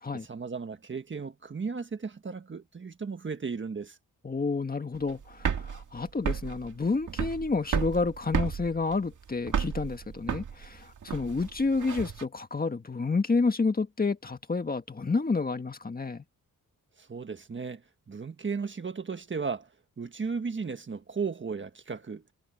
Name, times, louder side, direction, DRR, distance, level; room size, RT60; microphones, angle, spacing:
voice 1, 0.2-4.0 17.0-17.8 18.1-19.7 20.0-22.2, right 5 dB, 35° right, 1.5 m, -35 dB
voice 2, 4.2-16.2, left 4 dB, 25° left, 1.7 m, -29 dB
sound 1, 4.9-12.2, right 7 dB, 60° right, 2.1 m, -32 dB
wide cardioid pair, 115°, 34 cm